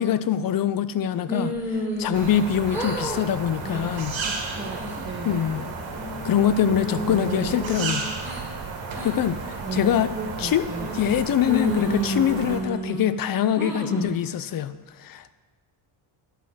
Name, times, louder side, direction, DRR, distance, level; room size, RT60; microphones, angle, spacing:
voice 1, 0.0-4.1 5.2-5.6 6.2-8.0 9.0-10.1 10.4-10.6 10.9-14.7 15.0-15.3, left 9 dB, 45° left, 13 dB, 0.5 m, -24 dB
sound 1, 1.3-2.4 2.7-3.2 3.6-4.0 4.5-5.0 5.5-6.3 6.7-8.4 8.9-9.1 9.7-10.1 10.7-11.2 11.5-13.1 13.6-14.2, equal, 5° right, 2.5 m, -31 dB
sound 2, 2.1-12.6, right 4 dB, 65° right, 1.9 m, -34 dB
voice 2, 4.2-5.4 7.0-7.6 9.6-11.0, right 4 dB, 25° right, 0 dB, 0.9 m, -34 dB
11.0 x 4.1 x 7.5 m, 1.3 s
cardioid pair, 95°, 50 cm